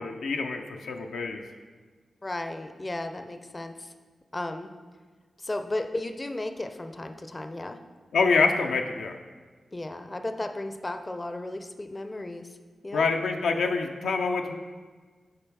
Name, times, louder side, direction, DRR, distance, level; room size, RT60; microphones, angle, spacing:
voice 1, 0.0-1.4 8.1-9.2 12.9-14.6, left 4 dB, 90° left, 4 dB, 0.4 m, -26 dB
voice 2, 2.2-3.9 4.3-4.7 5.4-7.8 9.7-12.6 12.8-13.1, left 2 dB, 30° left, 7 dB, 0.4 m, -34 dB
6.6 x 3.8 x 4.7 m, 1.4 s
cardioid pair, 55°, 0 cm